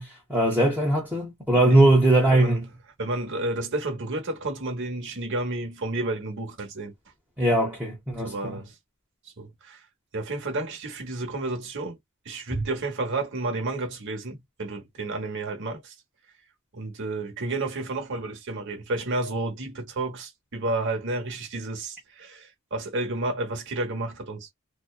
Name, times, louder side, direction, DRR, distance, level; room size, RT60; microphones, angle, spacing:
voice 1, 0.0-2.6 7.4-8.6 12.5-12.6, right 1 dB, 10° right, 0.8 m, -21 dB
voice 2, 1.5-2.0 2.3-2.6 3.0-6.9 8.2-8.7 9.4-9.8 10.1-12.0 12.2-15.9 16.7-24.5, right 2 dB, 60° right, 1.0 m, -31 dB
2.6 x 2.2 x 2.3 m
head